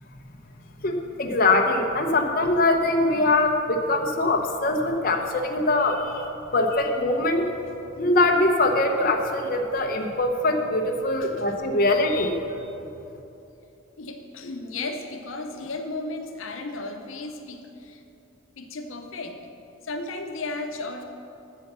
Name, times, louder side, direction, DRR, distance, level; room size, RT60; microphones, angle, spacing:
voice 1, 0.8-6.2 6.5-7.4 8.0-12.4, left 2 dB, 45° left, 2 dB, 0.8 m, -22 dB
voice 2, 14.0-18.0 18.6-19.4 19.8-21.0, left 2 dB, 85° left, 5 dB, 0.8 m, -34 dB
8.5 x 6.8 x 6.8 m, 2.8 s
head